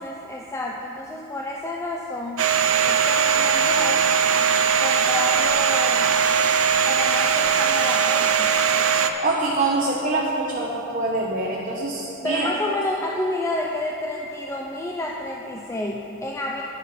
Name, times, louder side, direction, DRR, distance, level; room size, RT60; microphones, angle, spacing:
voice 1, 0.0-2.5 2.8-4.0 4.8-6.1 6.8-8.6 12.2-16.6, left 1 dB, 15° left, -1 dB, 0.5 m, -30 dB
Domestic sounds home sounds, 2.4-9.1, right 7 dB, 80° right, 0.6 m, -20 dB
voice 2, 9.2-12.5, right 2 dB, 40° right, -4 dB, 1.0 m, -24 dB
10.5 x 10.0 x 4.3 m, 2.9 s
head